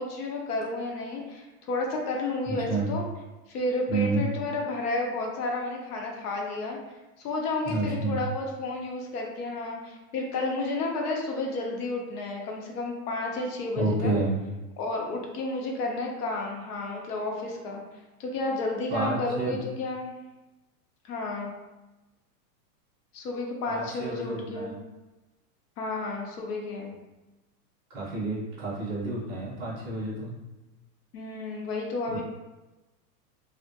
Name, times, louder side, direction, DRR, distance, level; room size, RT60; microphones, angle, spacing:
voice 1, 0.0-3.0 3.5-6.8 7.2-14.2 14.8-17.8 18.2-20.1 21.1-21.5 23.1-24.8 25.8-26.9 31.1-32.2, left 2 dB, 75° left, 0 dB, 0.7 m, -31 dB
voice 2, 2.5-2.9 3.9-4.2 7.7-8.2 13.8-14.4 18.9-19.6 23.7-24.8 27.9-30.3, right 2 dB, 15° right, -11 dB, 0.5 m, -29 dB
2.2 x 2.0 x 2.8 m, 1.1 s
supercardioid pair, 155°, 47 cm